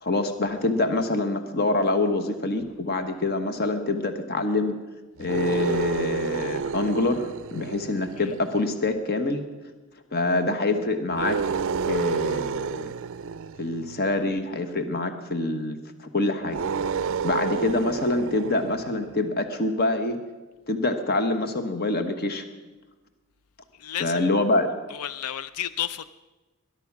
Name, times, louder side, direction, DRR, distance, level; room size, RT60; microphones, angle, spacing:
voice 1, 0.0-4.8 5.2-9.4 10.1-11.4 11.9-12.9 13.5-16.6 17.2-20.2 20.7-22.5 24.0-24.7, left 2 dB, 45° left, 1.2 m, -25 dB
sound 1, 5.2-8.7 11.1-14.2 16.4-19.2, right 5 dB, 60° right, 0.4 m, -30 dB
voice 2, 23.7-24.3 24.9-26.1, left 10 dB, 80° left, 0.5 m, -32 dB
21.0 x 11.5 x 6.1 m
head